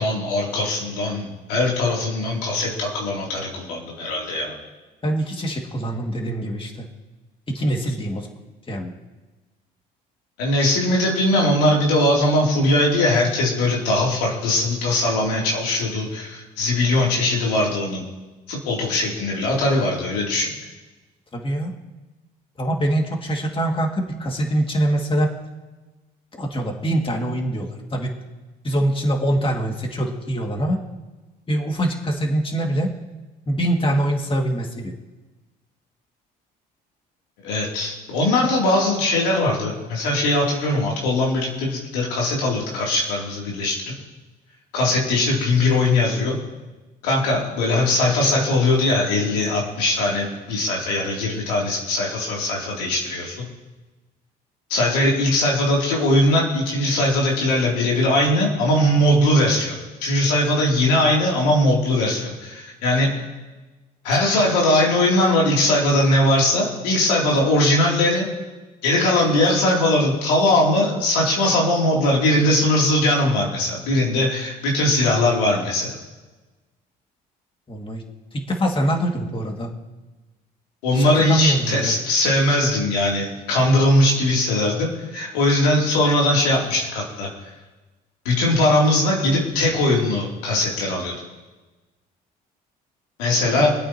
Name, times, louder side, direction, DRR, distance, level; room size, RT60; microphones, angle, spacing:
voice 1, 0.0-4.5 10.4-18.0 18.5-20.5 37.4-43.8 44.7-46.4 47.0-53.5 54.7-63.1 64.0-68.3 68.8-76.0 80.8-87.3 88.2-91.1 93.2-93.7, left 1 dB, 90° left, -3 dB, 3.1 m, -20 dB
voice 2, 5.0-6.9 7.5-8.3 8.7-8.9 21.3-21.7 22.6-25.3 26.4-28.1 28.6-30.8 31.5-32.9 33.5-34.9 77.7-78.0 78.3-79.7 80.9-82.0 93.6-93.7, right 1 dB, 25° left, 1 dB, 2.2 m, -24 dB
25.5 x 8.6 x 3.0 m, 1.2 s
supercardioid pair, 65°, 20 cm